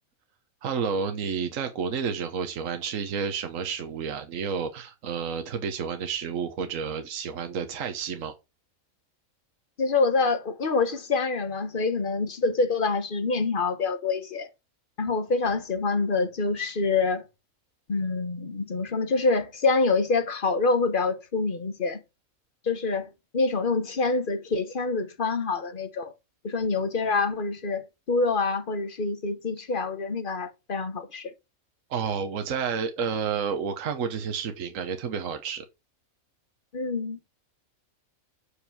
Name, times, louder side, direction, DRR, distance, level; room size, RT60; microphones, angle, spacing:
voice 1, 0.6-8.3 31.9-35.7, right 6 dB, 65° right, 1.3 m, -30 dB
voice 2, 9.8-14.5 15.0-17.2 17.9-22.0 22.6-26.1 26.4-31.3 36.7-37.2, left 3 dB, 40° left, 1.1 m, -26 dB
8.1 x 5.0 x 6.3 m
omnidirectional pair, 1.5 m